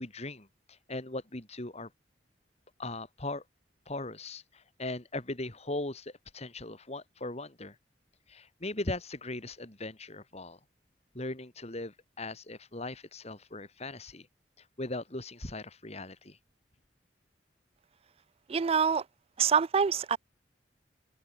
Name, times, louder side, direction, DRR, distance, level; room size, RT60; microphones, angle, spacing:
voice 1, 0.0-1.9 2.8-3.4 3.9-7.8 8.3-10.6 11.1-14.3 14.6-16.4, left 2 dB, 35° left, 2.9 m, -39 dB
voice 2, 18.5-19.0 19.4-20.2, right 6 dB, 35° right, 0.4 m, -25 dB
head